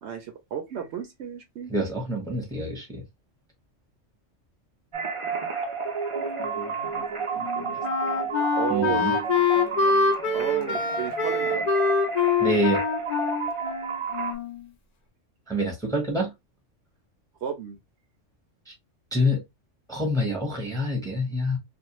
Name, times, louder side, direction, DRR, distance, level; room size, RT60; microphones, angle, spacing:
voice 1, 0.0-1.7 6.5-7.0 7.3-7.8 8.6-9.2 10.3-11.7 17.4-17.8, right 8 dB, 70° right, 0.8 m, -33 dB
voice 2, 1.7-3.0 8.7-9.1 12.4-12.8 15.5-16.3 19.1-19.4 19.9-21.6, equal, 5° left, 0.8 m, -26 dB
sound 1, 4.9-14.3, right 5 dB, 45° right, 0.4 m, -31 dB
Wind instrument woodwind instrument, 7.4-14.7, left 4 dB, 50° left, 0.5 m, -25 dB
2.5 x 2.1 x 2.9 m
omnidirectional pair, 1.3 m